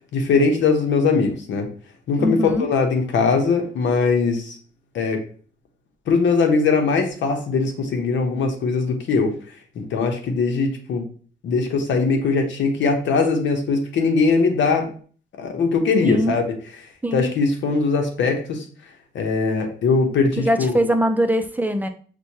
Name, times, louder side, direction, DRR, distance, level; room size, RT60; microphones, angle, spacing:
voice 1, 0.1-1.7 2.1-4.6 4.9-5.2 6.1-9.4 9.7-11.1 11.4-14.9 15.4-16.4 17.1-18.6 19.1-20.7, left 4 dB, 90° left, 4 dB, 0.8 m, -20 dB
voice 2, 2.2-2.7 16.0-16.4 17.0-17.3 20.4-21.9, equal, 10° right, 7 dB, 0.4 m, -22 dB
6.1 x 2.2 x 2.8 m, 0.42 s
cardioid pair, 100°, 19 cm